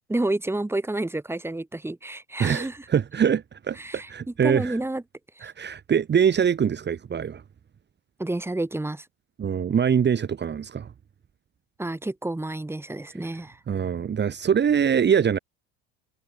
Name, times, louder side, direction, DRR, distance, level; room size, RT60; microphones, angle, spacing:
voice 1, 0.1-2.8 3.8-4.1 4.4-5.0 5.4-5.5 8.2-9.1 11.8-13.6, right 2 dB, 5° right, 4.3 m, -29 dB
voice 2, 2.4-4.8 5.4-7.4 9.4-10.9 13.7-15.4, right 7 dB, 30° right, 3.0 m, -23 dB
supercardioid pair, 100°, 35 cm